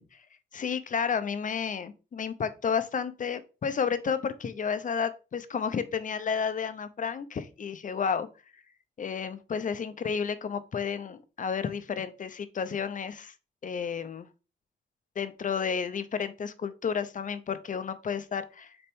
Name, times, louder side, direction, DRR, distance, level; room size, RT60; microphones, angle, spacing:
voice 1, 0.5-8.3 9.0-13.3 13.6-14.3 15.2-18.8, left 6 dB, 40° left, 0.6 m, -31 dB
6.8 x 4.3 x 3.5 m
wide cardioid pair, 150°, 20 cm